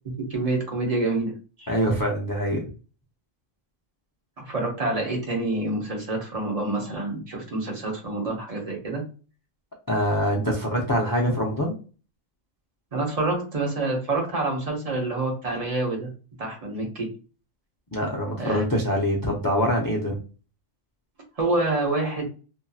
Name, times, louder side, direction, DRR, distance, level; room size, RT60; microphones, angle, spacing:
voice 1, 0.3-1.7 4.4-9.0 12.9-16.1 16.4-17.1 18.4-18.6 21.4-22.3, right 2 dB, 35° right, 0 dB, 0.8 m, -27 dB
voice 2, 1.7-2.6 9.9-11.7 17.9-20.2, equal, 35° left, -1 dB, 0.3 m, -24 dB
2.7 x 2.6 x 2.3 m, 0.36 s
omnidirectional pair, 1.3 m